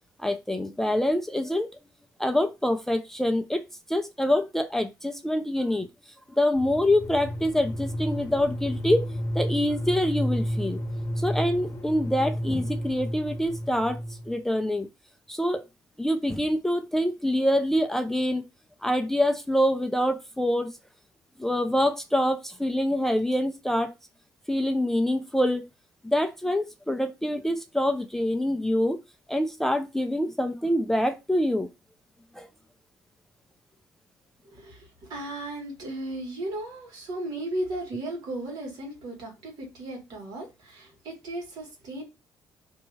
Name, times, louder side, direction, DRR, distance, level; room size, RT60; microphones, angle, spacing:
voice 1, 0.2-1.7 2.2-5.9 6.3-9.1 9.3-10.8 11.2-14.9 15.3-15.6 16.0-18.5 18.8-20.7 21.4-23.9 24.5-25.7 26.0-29.0 29.3-31.7 32.3-32.5, left 1 dB, 5° left, 0.3 m, -25 dB
sound 1, 6.5-14.4, equal, 40° left, 0.8 m, -32 dB
voice 2, 34.5-42.0, right 1 dB, 70° right, 1.7 m, -35 dB
2.8 x 2.7 x 4.1 m
cardioid pair, 145°, 7 cm